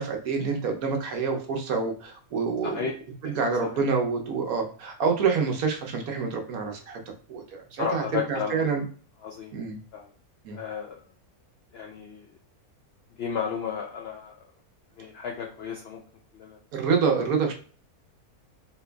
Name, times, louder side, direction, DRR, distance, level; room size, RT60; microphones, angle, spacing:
voice 1, 0.0-2.9 3.2-7.0 7.3-8.8 9.5-9.8 10.4-10.6 16.7-17.5, right 5 dB, 75° right, 2 dB, 1.2 m, -27 dB
voice 2, 2.6-3.0 3.7-3.8 7.8-8.6 9.2-9.5 9.9-10.1 10.5-11.0 11.7-12.3 13.2-14.3 15.0-16.0 16.3-16.6, left 7 dB, 75° left, 1 dB, 0.5 m, -33 dB
4.1 x 2.5 x 2.3 m, 0.41 s
omnidirectional pair, 1.6 m